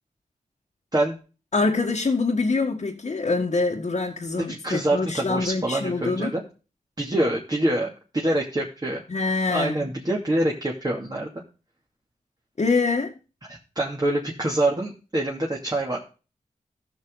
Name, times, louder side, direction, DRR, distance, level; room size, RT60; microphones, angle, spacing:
voice 1, 1.5-6.3 9.1-9.9 12.6-13.1, left 3 dB, 55° left, 1.6 m, -25 dB
voice 2, 4.4-6.4 7.0-9.0 9.5-11.3 13.5-16.0, right 1 dB, 30° right, 2.6 m, -25 dB
13.5 x 6.5 x 3.9 m
cardioid pair, 45°, 14 cm